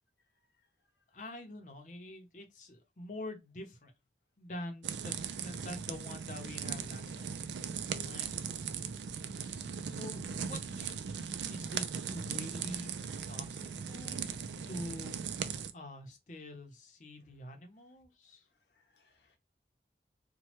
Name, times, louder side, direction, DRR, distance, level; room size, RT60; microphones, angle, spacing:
voice 1, 1.1-3.9 4.4-5.1 5.4-7.3 8.0-8.3 9.9-11.0 11.5-14.2 14.7-15.2 15.5-18.4, left 1 dB, 45° left, 0.7 m, -46 dB
sound 1, 4.8-15.7, right 7 dB, 80° right, 0.4 m, -39 dB
voice 2, 7.9-8.3 13.1-14.0 18.7-19.4, left 1 dB, 80° left, 0.9 m, -59 dB
3.0 x 2.2 x 2.9 m
head